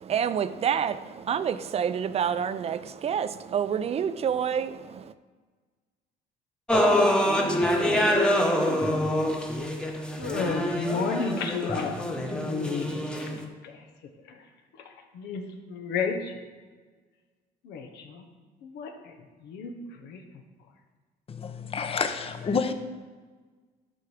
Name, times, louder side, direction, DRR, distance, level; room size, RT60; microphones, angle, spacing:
voice 1, 0.0-5.1, right 8 dB, 40° right, 14 dB, 0.5 m, -28 dB
sound 1, 6.7-13.4, equal, 5° left, 1.0 m, -25 dB
voice 2, 10.2-13.8 14.3-14.4 14.7-14.8 15.1-15.4 15.7-16.4 17.6-18.2 18.6-20.2, left 5 dB, 85° left, 4 dB, 1.2 m, -33 dB
voice 3, 21.3-22.7, left 5 dB, 35° left, 8 dB, 0.7 m, -29 dB
11.5 x 4.5 x 4.9 m, 1.4 s
cardioid pair, 110°, 17 cm